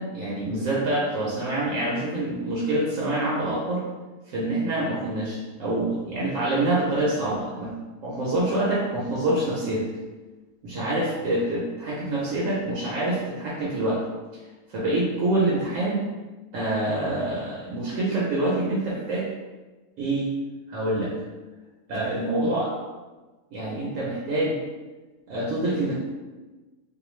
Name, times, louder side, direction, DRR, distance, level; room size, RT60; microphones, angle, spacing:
voice 1, 0.0-3.8 4.3-7.7 8.0-9.9 10.6-14.0 14.7-16.1 16.5-19.3 20.0-20.3 20.7-21.1 21.9-22.8 23.5-24.6 25.3-26.0, right 1 dB, 70° right, -5 dB, 0.9 m, -26 dB
2.4 x 2.2 x 3.0 m, 1.2 s
omnidirectional pair, 1.5 m